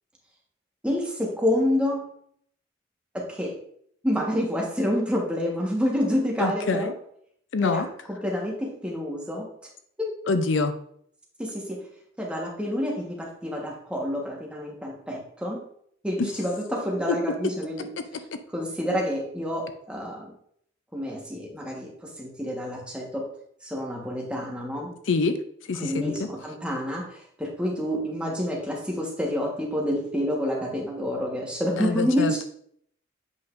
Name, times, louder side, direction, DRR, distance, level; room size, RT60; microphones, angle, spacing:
voice 1, 0.8-2.0 3.1-3.5 4.0-6.9 7.6-9.5 10.0-10.1 11.4-11.8 12.2-15.6 16.0-17.9 18.5-20.3 20.9-23.2 23.6-24.9 25.8-32.4, equal, 5° right, -2 dB, 1.3 m, -28 dB
voice 2, 6.4-6.9 7.5-7.9 10.3-10.7 25.1-25.4 25.7-26.3 31.8-32.4, left 4 dB, 75° left, 9 dB, 0.5 m, -25 dB
8.1 x 5.2 x 2.6 m, 0.66 s
head